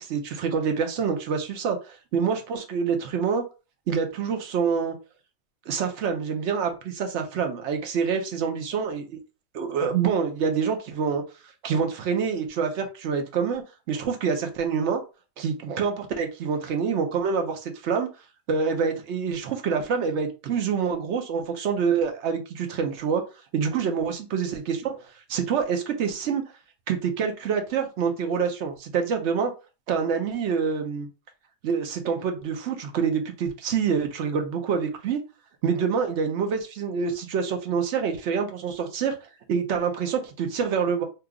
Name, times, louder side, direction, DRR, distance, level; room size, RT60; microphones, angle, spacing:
voice 1, 0.0-3.4 3.9-5.0 5.7-9.0 9.5-11.2 11.6-13.6 13.9-15.0 15.4-18.1 18.5-23.2 23.5-26.4 26.9-29.5 29.9-31.1 31.6-35.2 35.6-39.2 39.5-41.0, right 6 dB, 60° right, 5 dB, 0.9 m, -26 dB
2.9 x 2.4 x 3.5 m, 0.31 s
omnidirectional pair, 1.5 m